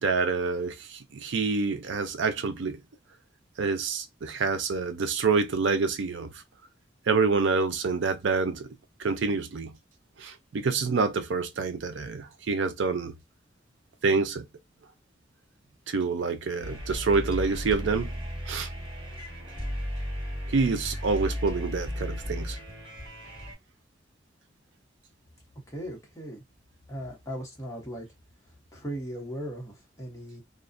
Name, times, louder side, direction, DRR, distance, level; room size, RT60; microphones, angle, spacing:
voice 1, 0.0-2.8 3.6-6.3 7.1-8.7 9.0-9.8 10.2-13.1 14.0-14.5 15.9-18.2 18.5-18.7 20.5-22.6, right 4 dB, 80° right, 0.5 m, -27 dB
sound 1, 16.6-23.5, equal, 25° right, 1.5 m, -35 dB
voice 2, 25.7-26.4 26.9-28.1 28.7-30.4, equal, 15° left, 0.7 m, -38 dB
2.4 x 2.1 x 2.5 m
head